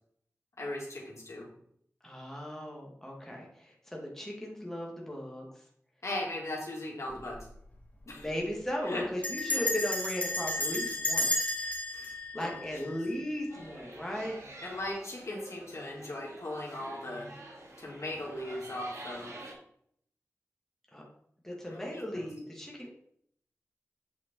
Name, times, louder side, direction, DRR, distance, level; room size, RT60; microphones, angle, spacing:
voice 1, 0.6-1.5 6.0-7.4 8.1-8.2 8.8-9.0 9.5-9.6 11.9-12.1 12.4-12.5 14.6-17.3 17.8-19.3 21.7-22.2, left 1 dB, 65° left, -3 dB, 2.8 m, -38 dB
voice 2, 2.0-5.6 8.1-11.3 12.3-14.4 20.9-21.0 21.4-22.9, equal, 5° left, -2 dB, 2.1 m, -37 dB
Bell, 7.1-7.5 7.7-7.8 8.1-8.4 9.2-13.3, left 2 dB, 25° left, 2.2 m, -33 dB
sound 1, 13.5-19.5, right 1 dB, 70° right, 2.5 m, -48 dB
8.3 x 5.1 x 4.6 m, 0.66 s
wide cardioid pair, 70°, 5 cm